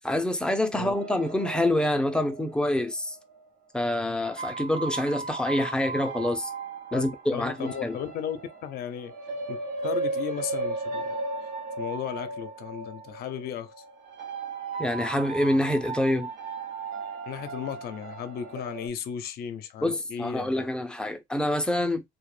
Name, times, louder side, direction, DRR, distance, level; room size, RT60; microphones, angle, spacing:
voice 1, 0.0-3.2 3.7-6.5 6.9-8.0 14.8-16.3 19.8-22.0, left 1 dB, 5° left, 0.4 m, -26 dB
sound 1, 0.9-3.4 4.2-18.9, right 3 dB, 80° right, 0.8 m, -36 dB
voice 2, 7.3-9.1 9.5-9.6 9.8-11.2 11.4-11.5 11.8-13.7 17.3-20.7, left 9 dB, 65° left, 0.5 m, -35 dB
2.2 x 2.0 x 3.0 m
cardioid pair, 110°, 17 cm